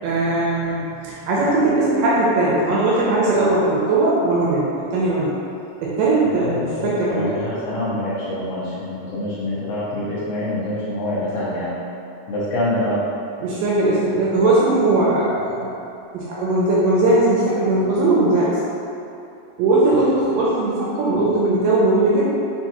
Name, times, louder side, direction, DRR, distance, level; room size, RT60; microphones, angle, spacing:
voice 1, 0.0-5.3 5.8-7.4 13.4-15.7 16.1-18.5 19.6-22.3, right 2 dB, 85° right, -6 dB, 1.9 m, -19 dB
voice 2, 6.4-11.7 12.3-13.0, left 1 dB, 85° left, -10 dB, 1.7 m, -25 dB
5.8 x 2.2 x 2.9 m, 2.8 s
omnidirectional pair, 4.3 m